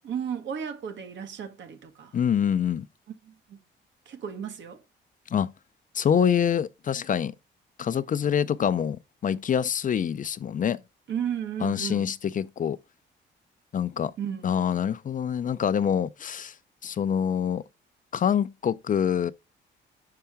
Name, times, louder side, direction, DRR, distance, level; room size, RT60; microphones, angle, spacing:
voice 1, 0.0-2.2 3.2-3.6 4.1-4.8 11.1-12.1 14.2-14.5, right 8 dB, 65° right, 1.4 m, -34 dB
voice 2, 2.1-2.9 5.3-5.5 5.9-7.3 7.8-10.8 11.6-12.8 13.7-14.1 14.4-16.5 16.8-17.6 18.1-19.3, left 8 dB, 40° left, 0.5 m, -25 dB
6.6 x 5.7 x 3.5 m
cardioid pair, 90°, 20 cm